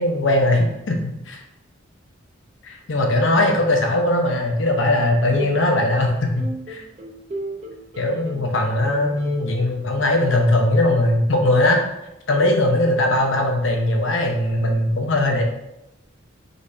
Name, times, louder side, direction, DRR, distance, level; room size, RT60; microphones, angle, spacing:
voice 1, 0.0-1.4 2.6-6.8 8.0-11.8 12.3-15.4, left 1 dB, 70° left, 2 dB, 0.8 m, -20 dB
sound 1, 5.1-5.9 6.4-8.6 8.9-9.4, right 1 dB, 35° right, 0.6 m, -34 dB
4.0 x 3.4 x 3.1 m, 0.87 s
head